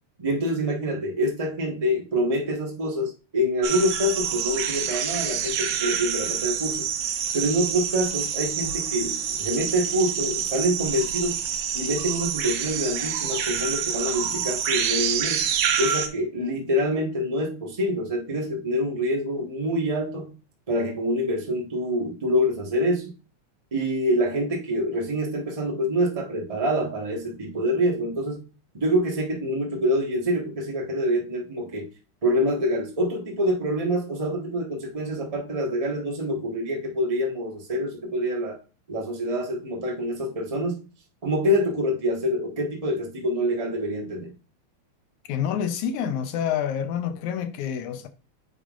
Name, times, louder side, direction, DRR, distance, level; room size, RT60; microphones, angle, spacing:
voice 1, 0.2-6.9 7.3-11.4 11.7-15.4 15.8-20.3 20.7-23.1 23.7-28.5 28.7-31.9 32.2-38.6 38.9-40.8 41.2-44.3, equal, 35° right, 0.5 m, -26 dB
sound 1, 3.6-16.1, right 8 dB, 80° right, 2.3 m, -27 dB
voice 2, 45.3-48.1, left 8 dB, 80° left, 2.1 m, -28 dB
8.2 x 5.4 x 2.5 m
omnidirectional pair, 3.4 m